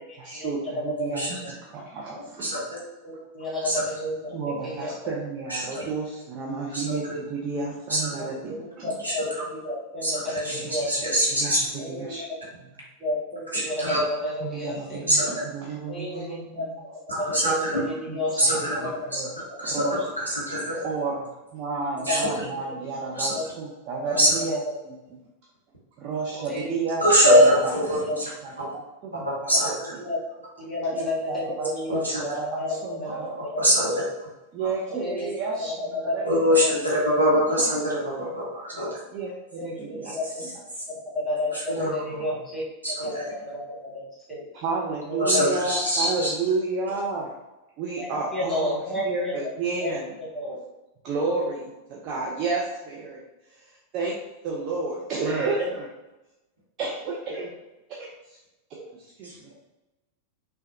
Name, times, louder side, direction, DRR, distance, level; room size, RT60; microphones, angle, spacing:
voice 1, 0.2-2.5 4.3-8.9 10.5-10.7 11.3-12.3 14.4-16.7 18.0-19.3 19.6-20.1 20.8-25.2 26.0-27.7 28.1-29.7 30.9-31.7 32.0-33.8 34.5-36.6 37.2-37.8 38.2-38.3 39.1-40.5 41.7-42.3 44.5-47.4 47.8-50.2 51.0-55.9 56.8-57.5 57.9-58.4 58.7-59.5, right 3 dB, 40° right, -3 dB, 0.5 m, -32 dB
voice 2, 0.7-1.2 2.7-4.9 8.2-11.2 11.8-12.2 13.0-15.1 15.8-16.6 17.2-19.1 19.5-19.8 21.9-22.3 23.3-23.4 24.1-24.5 26.3-26.8 27.2-27.5 27.8-28.2 29.6-30.2 30.6-32.0 32.6-33.0 33.5-33.6 34.9-35.3 35.9-36.1 36.6-36.7 39.6-40.4 41.1-42.6 43.0-44.5 45.2-45.6 48.0-48.1 48.3-49.3 49.8-50.6, left 1 dB, 10° left, -7 dB, 1.3 m, -31 dB
voice 3, 6.7-7.1 7.9-8.0 9.0-9.1 10.0-10.1 10.4-10.6 10.9-11.6 13.5-14.0 15.1-15.3 17.1-17.8 18.4-19.2 19.6-20.8 22.1-22.2 23.2-23.3 24.2-24.3 27.0-27.5 27.8-28.2 29.5-29.7 31.9-32.2 33.6-33.9 36.2-38.9 42.8-43.2 45.2-46.3, equal, 85° right, -6 dB, 0.9 m, -23 dB
3.3 x 2.2 x 2.6 m, 1.0 s
figure-of-eight pair, 90°, 0 cm